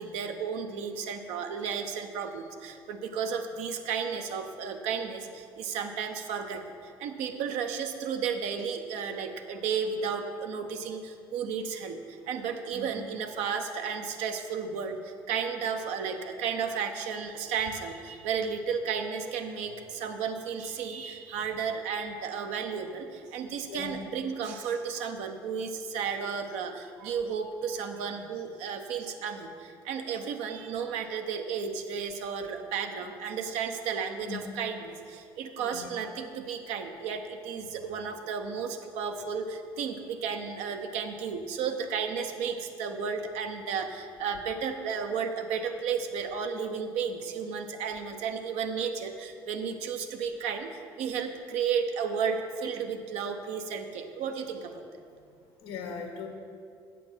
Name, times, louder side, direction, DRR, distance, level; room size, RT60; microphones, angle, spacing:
voice 1, 0.0-54.8, right 6 dB, 65° right, 5 dB, 0.9 m, -33 dB
voice 2, 23.7-24.0 34.2-34.4 35.6-35.9 55.6-56.3, left 5 dB, 80° left, 3 dB, 1.6 m, -39 dB
8.7 x 6.6 x 6.1 m, 2.3 s
hypercardioid pair, 55°, 12 cm